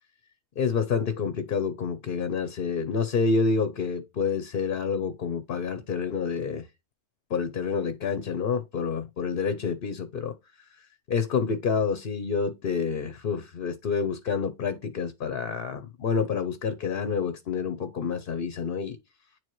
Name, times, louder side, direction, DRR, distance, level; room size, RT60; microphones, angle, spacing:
voice 1, 0.6-6.7 7.3-10.3 11.1-19.0, left 5 dB, 55° left, 0.8 m, -28 dB
9.4 x 4.6 x 3.1 m
omnidirectional pair, 1.3 m